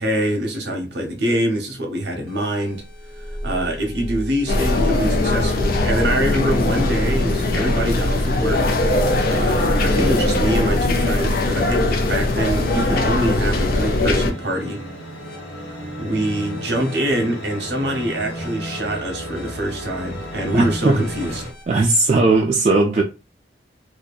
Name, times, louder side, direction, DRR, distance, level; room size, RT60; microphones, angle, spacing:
voice 1, 0.0-2.8 3.2-8.7 9.3-14.8 16.0-21.4, right 1 dB, 60° right, 0.7 m, -24 dB
sound 1, 2.3-22.0, equal, 30° left, 1.1 m, -37 dB
sound 2, 4.5-14.3, left 2 dB, 50° left, 0.4 m, -20 dB
sound 3, 7.2-21.5, equal, 90° left, 1.0 m, -35 dB
voice 2, 20.5-21.1 21.7-23.0, right 3 dB, 35° right, 0.3 m, -17 dB
2.7 x 2.2 x 2.3 m
head